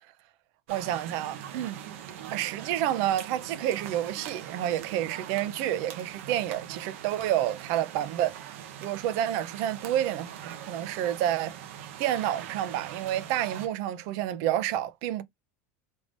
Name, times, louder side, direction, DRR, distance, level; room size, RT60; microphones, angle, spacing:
voice 1, 0.7-1.8 2.3-8.5 8.8-11.6 12.0-15.2, right 12 dB, 50° right, 0.6 m, -29 dB
sound 1, 0.7-13.7, right 9 dB, 75° right, 0.9 m, -42 dB
3.6 x 3.3 x 2.5 m
supercardioid pair, 175°, 7 cm